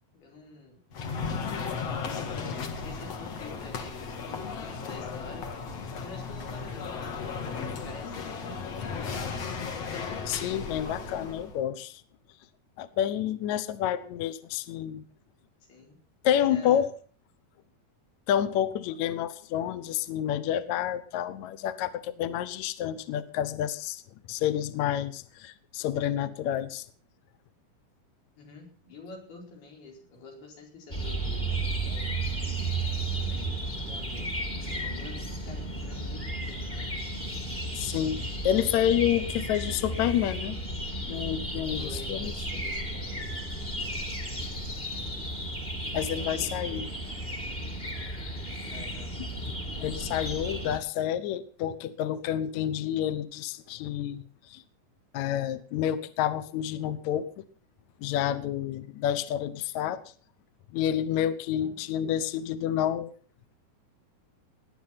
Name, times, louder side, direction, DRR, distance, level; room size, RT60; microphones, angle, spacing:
voice 1, 0.1-0.8 2.0-5.5 6.0-9.2 15.7-16.0 16.2-16.9 28.4-32.2 33.3-34.3 34.6-37.0 38.5-38.6 39.2-39.3 41.8-43.4 45.9-46.8 48.7-49.2 61.6-61.8, left 3 dB, 85° left, 1 dB, 6.6 m, -47 dB
sound 1, 0.9-11.6, left 5 dB, 50° left, 2.6 m, -35 dB
voice 2, 10.3-12.0 12.8-15.0 16.2-16.9 18.3-24.0 24.3-26.8 37.7-40.6 41.1-42.3 45.9-46.8 49.2-49.3 49.8-54.6 55.1-57.3 58.0-60.0 60.7-63.1, left 10 dB, 70° left, 14 dB, 1.8 m, -29 dB
sound 2, 30.9-50.8, right 1 dB, 15° left, 2.1 m, -33 dB
19.0 x 10.0 x 5.8 m, 0.42 s
omnidirectional pair, 4.4 m